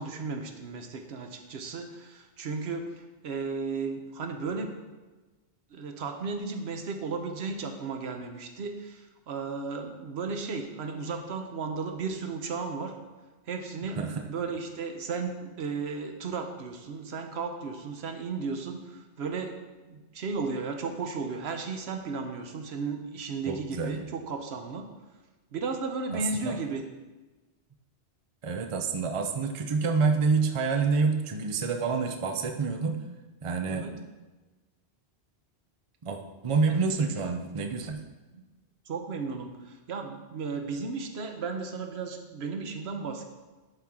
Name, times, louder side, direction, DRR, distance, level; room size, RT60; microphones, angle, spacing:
voice 1, 0.0-2.9 3.2-4.8 5.7-12.9 13.5-14.0 14.3-19.6 19.8-24.8 25.5-26.8 33.7-34.0 38.9-43.2, right 4 dB, 75° right, 5 dB, 1.0 m, -34 dB
voice 2, 13.9-14.3 23.5-24.0 26.1-26.6 28.4-33.0 33.4-33.9 36.0-38.0, right 4 dB, 40° right, 5 dB, 0.6 m, -28 dB
11.0 x 4.5 x 3.7 m, 1.2 s
omnidirectional pair, 1.1 m